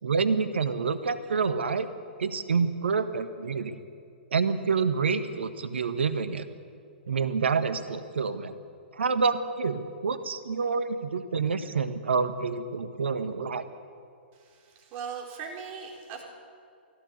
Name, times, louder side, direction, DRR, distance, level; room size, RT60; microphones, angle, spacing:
voice 1, 0.0-1.9 2.2-3.8 4.3-6.5 7.1-8.5 8.9-13.6, right 5 dB, 75° right, 10 dB, 1.4 m, -27 dB
voice 2, 14.3-16.2, right 6 dB, 35° right, 0 dB, 4.4 m, -39 dB
19.5 x 16.5 x 8.2 m, 2.4 s
figure-of-eight pair, 120°, 6 cm